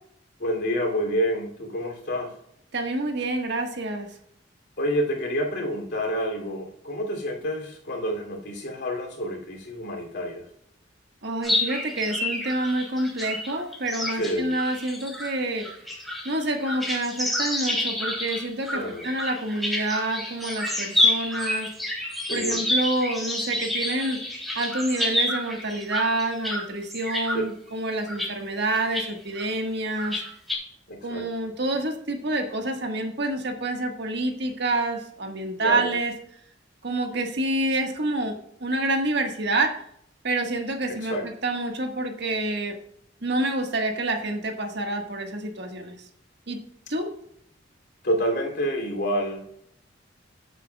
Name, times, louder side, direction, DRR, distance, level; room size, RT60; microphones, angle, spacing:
voice 1, 0.4-2.3 4.8-10.4 14.1-14.5 18.7-19.1 22.3-22.6 27.3-27.4 30.9-31.5 35.6-35.9 41.0-41.3 48.0-49.6, equal, 65° left, 0 dB, 3.0 m, -28 dB
voice 2, 2.7-4.1 11.2-15.7 16.2-21.7 22.3-24.2 24.5-30.2 31.0-36.1 36.8-38.3 38.6-39.8 40.2-42.8 43.2-46.0 46.5-46.6 46.9-47.1, right 2 dB, 65° right, 3 dB, 1.6 m, -28 dB
sound 1, 11.4-26.6 26.9-27.4 27.9-28.3 28.7-29.1 29.4-29.5 30.0-30.5, left 1 dB, ahead, 3.3 m, -28 dB
15.0 x 8.1 x 2.4 m, 0.70 s
head